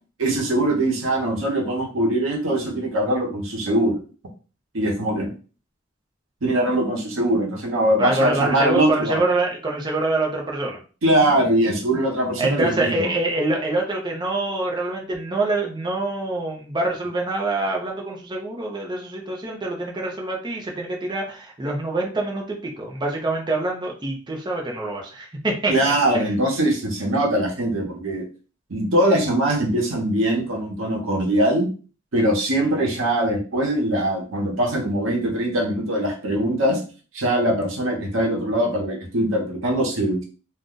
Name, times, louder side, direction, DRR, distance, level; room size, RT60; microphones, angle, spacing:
voice 1, 0.2-4.0 4.7-5.3 6.4-9.2 11.0-13.1 25.7-28.2 28.7-31.7 32.1-36.8 37.1-40.2, right 1 dB, 85° right, 1 dB, 0.9 m, -22 dB
voice 2, 8.0-10.8 12.4-26.3, right 2 dB, 25° right, -1 dB, 0.6 m, -25 dB
2.5 x 2.2 x 3.7 m, 0.37 s
head